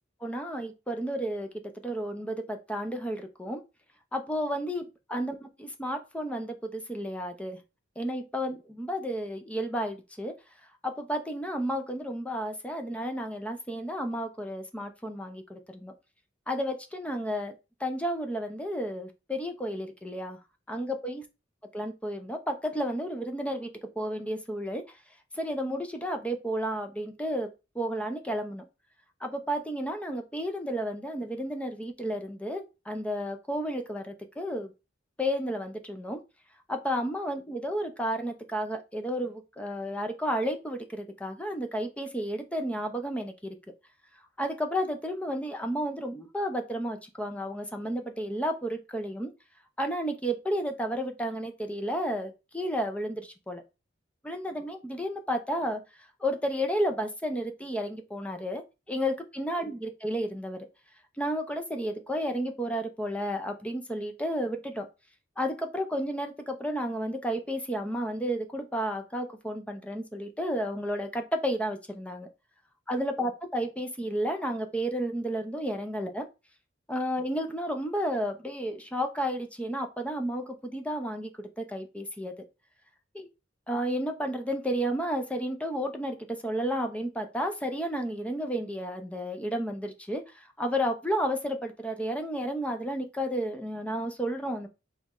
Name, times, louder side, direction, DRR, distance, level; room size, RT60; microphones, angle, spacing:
voice 1, 0.2-1.5 1.8-3.6 4.1-7.6 8.0-10.3 10.8-15.9 16.5-17.5 17.8-20.4 20.7-21.2 21.7-24.8 25.3-27.5 27.7-28.7 29.2-34.7 35.2-36.2 36.7-43.6 44.4-49.3 49.8-53.6 54.2-55.8 56.2-60.7 61.2-64.9 65.4-72.3 72.9-76.3 76.9-81.3 81.6-82.3 83.1-83.3 83.7-94.7, equal, 5° left, 5 dB, 0.6 m, -32 dB
4.1 x 3.1 x 3.7 m, 0.28 s
head